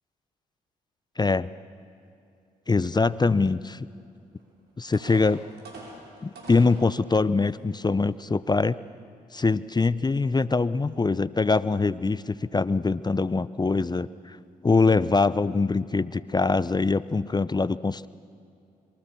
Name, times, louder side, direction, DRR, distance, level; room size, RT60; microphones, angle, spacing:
voice 1, 1.2-1.5 2.7-3.9 4.8-5.4 6.2-8.8 9.3-14.4 14.6-18.1, left 3 dB, 20° left, 17 dB, 0.7 m, -23 dB
sound 1, 4.4-4.5 4.9-6.8 7.5-7.6 8.1-8.3, right 2 dB, 55° right, 7.1 m, -44 dB
26.5 x 23.0 x 7.0 m, 2.5 s
hypercardioid pair, 45°, 20 cm